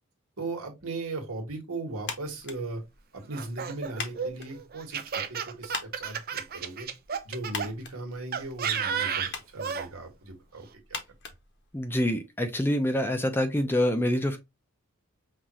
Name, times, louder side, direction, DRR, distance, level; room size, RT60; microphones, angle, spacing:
voice 1, 0.4-2.8 3.1-6.9 7.2-10.6 10.9-11.0, right 2 dB, 80° right, 1.5 m, -37 dB
sound 1, 2.0-12.2, left 5 dB, 55° left, 0.9 m, -43 dB
Laughter, 3.3-7.7 8.3-9.9, right 7 dB, 45° right, 0.5 m, -32 dB
voice 2, 11.7-14.4, left 1 dB, 10° left, 0.5 m, -26 dB
5.5 x 2.5 x 3.0 m
head